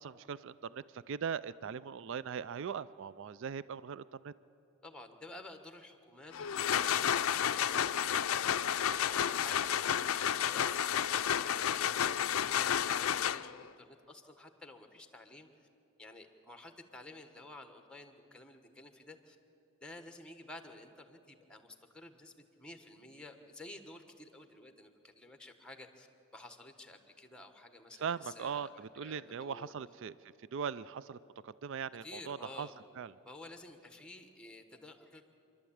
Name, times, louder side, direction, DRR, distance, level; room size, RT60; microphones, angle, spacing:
voice 1, 0.0-4.3 28.0-32.7 33.0-33.1, right 7 dB, 60° right, 17 dB, 0.4 m, -40 dB
voice 2, 4.8-8.2 8.8-11.0 11.3-15.5 16.0-19.4 19.8-26.1 26.3-29.7 32.0-32.7 33.2-35.4, left 2 dB, 5° left, 6 dB, 1.3 m, -52 dB
sound 1, 6.3-13.7, left 9 dB, 65° left, 0.4 m, -31 dB
27.0 x 12.0 x 8.6 m, 2.7 s
head